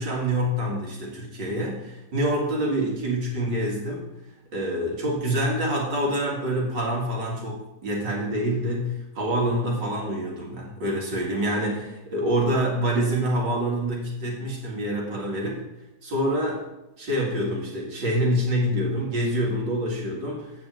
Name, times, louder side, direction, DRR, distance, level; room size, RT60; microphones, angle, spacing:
voice 1, 0.0-4.1 4.5-15.6 16.0-16.7 17.0-20.5, right 1 dB, 85° right, -3 dB, 3.3 m, -26 dB
8.4 x 6.1 x 7.8 m, 0.94 s
omnidirectional pair, 1.9 m